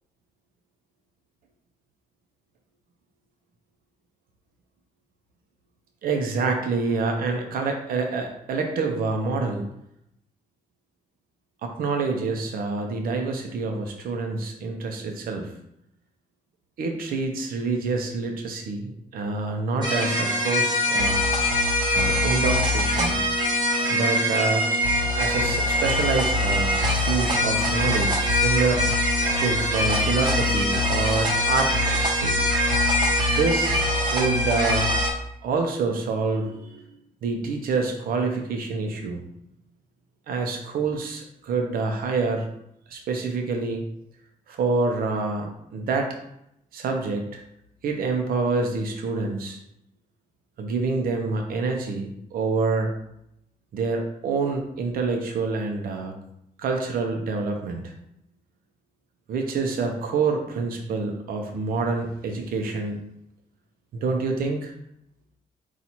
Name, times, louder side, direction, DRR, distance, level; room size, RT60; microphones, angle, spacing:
voice 1, 6.0-9.7 11.6-15.5 16.8-21.2 21.9-23.2 23.9-24.7 25.2-28.9 29.3-32.4 33.3-33.8 34.1-34.9 35.4-39.2 40.3-42.5 42.9-43.8 44.5-46.1 46.7-47.4 47.8-49.6 50.6-52.9 53.7-56.1 56.6-57.9 59.3-63.0 63.9-64.7, right 4 dB, 90° right, 3 dB, 0.6 m, -27 dB
sound 1, 19.8-35.1, left 1 dB, 30° right, 0.9 m, -23 dB
4.3 x 2.4 x 4.1 m, 0.76 s
cardioid pair, 130°, 15 cm